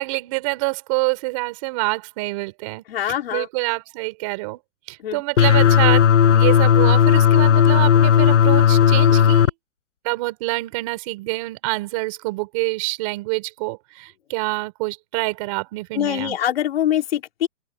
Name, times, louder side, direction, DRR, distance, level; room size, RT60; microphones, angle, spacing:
voice 1, 0.0-4.6 4.9-9.5 10.0-16.4, right 25 dB, 25° right, 4.8 m, -26 dB
voice 2, 2.9-3.5 5.0-5.2 15.9-17.5, left 11 dB, 50° left, 3.7 m, -23 dB
sound 1, 5.4-9.5, left 8 dB, 65° left, 6.2 m, -14 dB
open air
hypercardioid pair, 175°, 39 cm